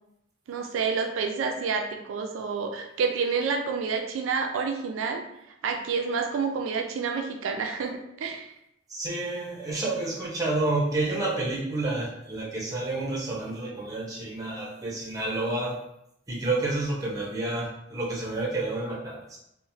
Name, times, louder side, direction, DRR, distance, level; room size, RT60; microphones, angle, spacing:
voice 1, 0.5-5.2 5.6-8.5, right 5 dB, 90° right, 3 dB, 0.3 m, -29 dB
voice 2, 8.9-15.8 16.3-19.4, right 2 dB, 20° right, -4 dB, 0.7 m, -29 dB
3.0 x 2.1 x 2.6 m, 0.80 s
head